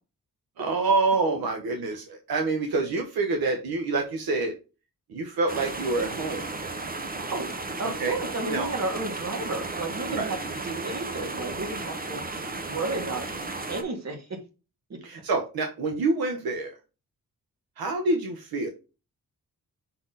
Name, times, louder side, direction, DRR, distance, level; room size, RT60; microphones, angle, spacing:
voice 1, 0.6-4.5 5.1-6.5 7.8-8.2 8.5-8.7 10.1-10.3 15.0-16.7 17.8-18.7, right 3 dB, 85° right, 1.1 m, -27 dB
sound 1, 5.5-13.8, right 3 dB, 25° right, 1.0 m, -34 dB
voice 2, 7.8-12.2 12.7-13.3 13.7-14.3 14.9-15.0, right 2 dB, 45° right, 2.2 m, -32 dB
5.8 x 4.2 x 4.0 m
cardioid pair, 95°, 36 cm